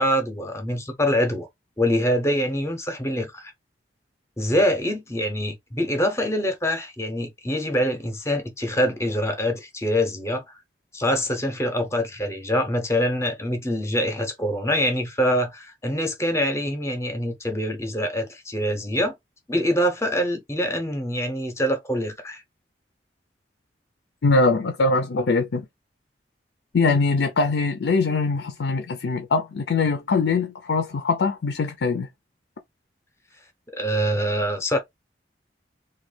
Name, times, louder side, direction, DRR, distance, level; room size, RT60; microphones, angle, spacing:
voice 1, 0.0-1.5 1.8-3.5 4.4-10.6 10.9-19.1 19.5-22.4 33.8-34.8, equal, 15° left, 0.7 m, -24 dB
voice 2, 24.2-25.6 26.7-32.1, left 3 dB, 75° left, 0.5 m, -22 dB
2.9 x 2.3 x 3.2 m
head